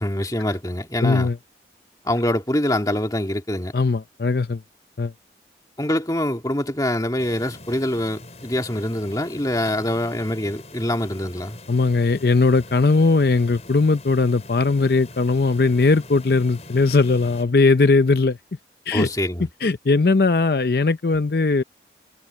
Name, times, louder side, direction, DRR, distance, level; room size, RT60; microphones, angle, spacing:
voice 1, 0.0-1.3 2.0-3.7 5.8-11.6 18.9-19.5, left 1 dB, 20° left, 2.4 m, -24 dB
voice 2, 1.0-1.4 3.7-4.6 5.0-5.1 11.7-18.4 18.9-19.1 19.6-21.6, left 3 dB, 55° left, 0.6 m, -19 dB
sound 1, 7.2-17.4, left 2 dB, 40° left, 6.8 m, -42 dB
head